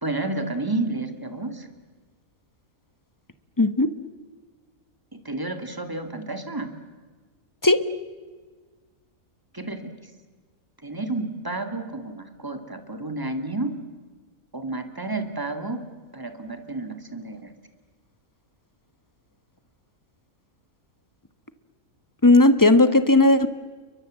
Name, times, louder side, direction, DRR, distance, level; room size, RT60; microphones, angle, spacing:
voice 1, 0.0-1.7 5.1-6.7 9.5-10.1 10.8-13.7 14.5-15.8 16.1-17.5, right 2 dB, 15° right, 8 dB, 2.2 m, -31 dB
voice 2, 3.6-3.9 7.6-7.8 22.2-23.5, left 2 dB, 15° left, 12 dB, 1.0 m, -16 dB
30.0 x 23.0 x 7.6 m, 1.4 s
omnidirectional pair, 1.4 m